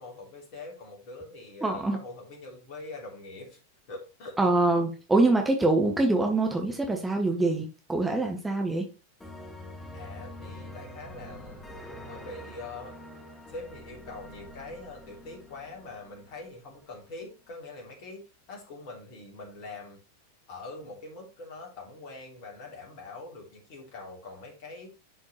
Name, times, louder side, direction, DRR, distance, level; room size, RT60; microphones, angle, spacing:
voice 1, 0.0-3.6 3.9-4.4 9.9-11.7 12.1-13.0 13.5-20.0 20.5-24.9, left 3 dB, 45° left, 3.0 m, -43 dB
voice 2, 1.6-2.0 4.4-8.9, right 2 dB, 10° right, 1.1 m, -24 dB
sound 1, 9.2-16.8, left 1 dB, 10° left, 1.5 m, -45 dB
11.0 x 4.3 x 3.1 m
figure-of-eight pair, 90°, 0 cm